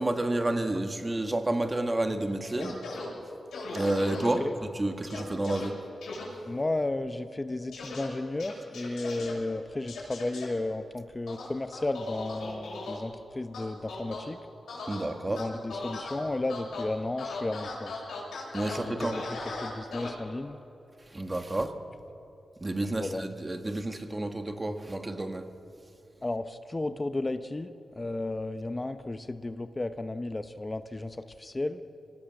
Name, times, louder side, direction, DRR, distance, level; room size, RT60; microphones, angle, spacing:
voice 1, 0.0-2.8 3.7-5.8 14.9-15.4 18.5-19.2 21.1-21.7 22.6-25.5, right 1 dB, 25° right, 7 dB, 1.8 m, -30 dB
sound 1, 2.6-3.1 3.5-4.3 5.1-5.7 6.0-6.2 7.7-8.1 8.4-9.3 9.9-10.4 11.3-13.0 13.5-14.2 14.7-15.0 15.4-16.2 16.5-16.8 17.2-20.1, left 3 dB, 85° left, 6.2 m, -38 dB
voice 2, 6.5-14.4 15.3-17.9 18.7-19.2 19.6-20.6 22.8-23.2 26.2-31.8, left 2 dB, 30° left, 10 dB, 0.9 m, -33 dB
24.0 x 18.5 x 6.5 m, 2.8 s
cardioid pair, 55°, 0 cm